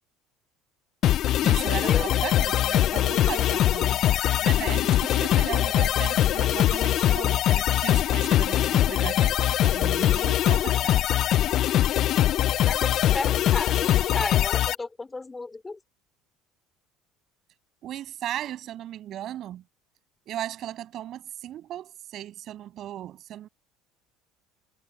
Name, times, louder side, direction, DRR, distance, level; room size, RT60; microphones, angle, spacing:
sound 1, 1.0-14.7, left 12 dB, 55° left, 0.5 m, -22 dB
voice 1, 1.4-4.0 4.4-11.0 17.8-19.6 20.3-23.5, right 12 dB, 50° right, 7.6 m, -36 dB
voice 2, 12.6-15.8, left 3 dB, 15° left, 3.4 m, -34 dB
supercardioid pair, 105°, 0 cm